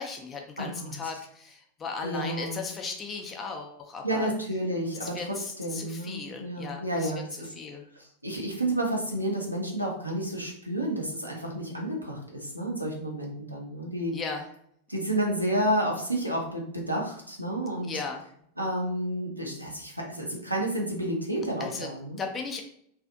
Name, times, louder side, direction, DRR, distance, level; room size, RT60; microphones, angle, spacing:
voice 1, 0.0-4.3 5.0-7.2 7.6-7.8 14.1-14.5 17.8-18.2 21.6-21.9 22.2-22.6, left 4 dB, 20° left, 2 dB, 0.4 m, -36 dB
voice 2, 0.6-1.1 2.0-2.6 4.0-7.5 8.0-14.2 14.9-18.0 18.6-22.2, right 1 dB, 90° right, -2 dB, 0.5 m, -31 dB
2.4 x 2.4 x 2.3 m, 0.67 s
figure-of-eight pair, 90°, 0 cm